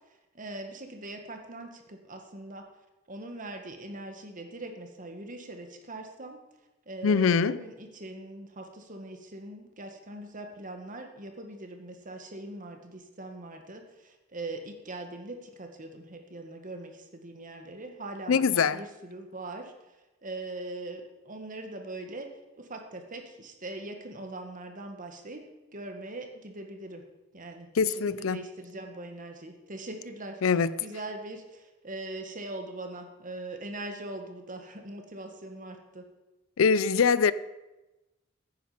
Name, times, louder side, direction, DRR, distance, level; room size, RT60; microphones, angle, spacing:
voice 1, 0.1-2.7 3.1-6.4 6.9-25.4 25.7-27.0 27.3-36.0, right 2 dB, 40° right, 1.7 m, -41 dB
voice 2, 7.0-7.6 18.3-18.8 27.8-28.4 30.4-30.7 36.6-37.3, left 5 dB, 75° left, 0.5 m, -23 dB
15.0 x 9.5 x 5.1 m
head